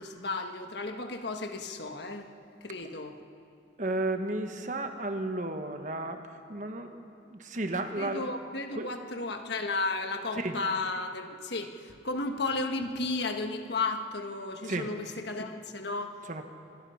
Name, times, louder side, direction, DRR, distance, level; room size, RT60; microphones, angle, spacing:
voice 1, 0.0-2.3 2.6-3.2 8.0-16.2, left 3 dB, 60° left, 5 dB, 1.5 m, -34 dB
voice 2, 3.8-6.2 6.5-7.0 7.3-8.3 8.7-8.9 10.4-10.6 14.6-14.9 16.3-16.4, right 2 dB, 40° right, 6 dB, 1.3 m, -33 dB
25.5 x 21.5 x 5.7 m, 2.6 s
head